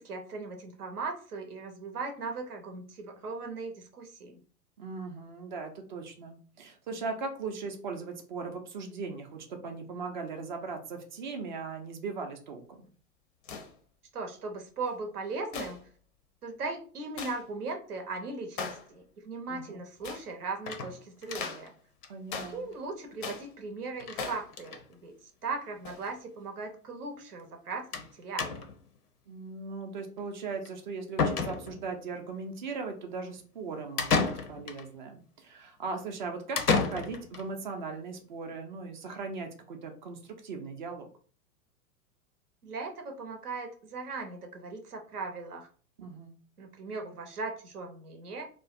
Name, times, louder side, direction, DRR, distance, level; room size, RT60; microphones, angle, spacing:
voice 1, 0.0-4.4 14.1-15.8 16.4-21.7 22.5-28.6 42.6-45.7 46.0-46.1 46.6-48.4, right 3 dB, 80° right, 4 dB, 0.7 m, -38 dB
voice 2, 4.8-12.9 19.5-19.8 22.1-22.7 29.3-41.1 46.0-46.4, right 4 dB, 35° right, 4 dB, 0.4 m, -38 dB
sound 1, 13.4-13.7 15.5-15.9 17.2-17.4 18.6-18.9 20.0-20.3 21.3-21.7 22.3-22.6 23.2-23.5 24.1-24.5 25.8-26.1, left 5 dB, 35° left, 0.4 m, -39 dB
sound 2, 20.7-21.7 22.0-22.1 22.4-22.5 22.7-22.8 24.0-24.2 24.5-24.9 25.7-25.8 26.1-26.2 27.9-28.1 28.4-28.9 30.7-30.8 31.2-32.0 34.0-34.9 36.6-37.4, left 5 dB, 85° left, 0.6 m, -30 dB
2.4 x 2.1 x 2.4 m, 0.41 s
figure-of-eight pair, 100°, 45 cm